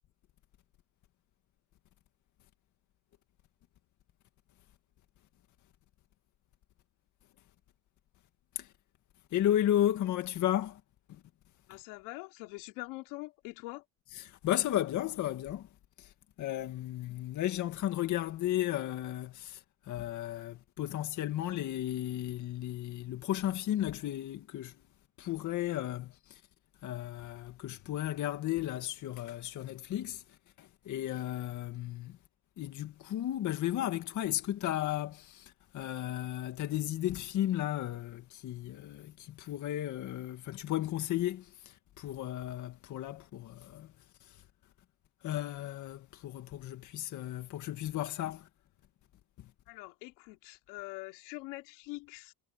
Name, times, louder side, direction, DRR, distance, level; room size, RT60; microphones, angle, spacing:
voice 1, 9.3-10.8 11.1-11.2 11.7-11.8 14.1-15.7 16.0-16.1 16.4-24.8 25.2-26.4 26.8-32.2 32.6-43.9 44.2-44.4 45.2-48.5 49.4-49.5, left 12 dB, 45° left, 2.1 m, -34 dB
voice 2, 11.7-13.8 49.7-52.3, left 23 dB, 80° left, 3.4 m, -44 dB
cardioid pair, 140°, 40 cm